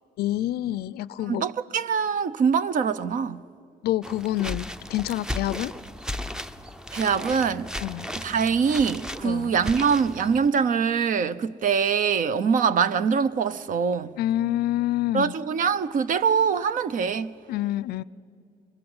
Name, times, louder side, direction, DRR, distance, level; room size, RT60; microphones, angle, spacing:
voice 1, 0.2-1.5 3.8-5.7 7.8-8.1 9.2-9.5 14.2-15.3 17.5-18.0, left 14 dB, 70° left, 0.5 m, -27 dB
voice 2, 1.3-3.4 6.9-7.7 8.2-14.1 15.1-17.3, right 6 dB, 50° right, 0.8 m, -23 dB
sound 1, 4.0-10.5, left 1 dB, 5° right, 0.6 m, -36 dB
24.0 x 23.0 x 8.0 m
cardioid pair, 110°, 17 cm